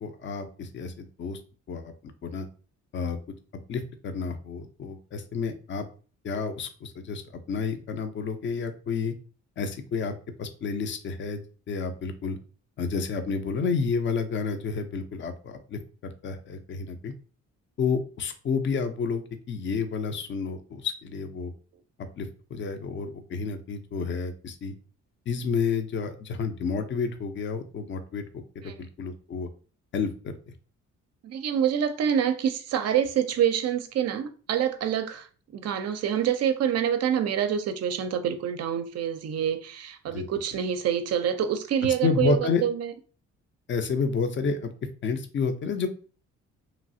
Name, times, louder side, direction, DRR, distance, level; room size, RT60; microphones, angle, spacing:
voice 1, 0.0-1.4 1.7-1.9 2.2-2.5 2.9-3.2 3.7-5.8 6.2-7.2 7.5-9.1 9.6-10.1 10.4-12.4 12.8-17.1 17.8-21.5 22.0-24.7 25.3-29.5 29.9-30.4 40.1-40.2 42.0-42.6 43.7-44.7 45.0-45.9, left 5 dB, 40° left, 0.5 m, -30 dB
voice 2, 31.2-35.3 35.5-42.9, right 9 dB, 55° right, 0.5 m, -26 dB
3.0 x 2.3 x 2.6 m
cardioid pair, 90°, 30 cm